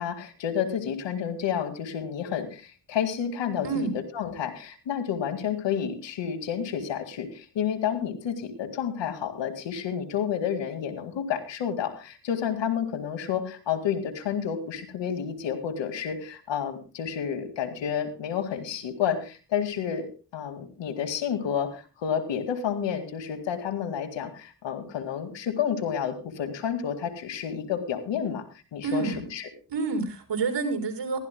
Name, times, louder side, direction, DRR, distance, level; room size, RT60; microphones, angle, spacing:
voice 1, 0.0-3.9 4.1-20.1 20.3-28.5 28.7-29.4, left 8 dB, 85° left, 8 dB, 2.2 m, -30 dB
voice 2, 3.6-4.0 28.8-29.2 29.7-31.2, right 4 dB, 75° right, 2 dB, 4.6 m, -28 dB
19.5 x 15.5 x 2.2 m, 0.33 s
supercardioid pair, 45°, 43 cm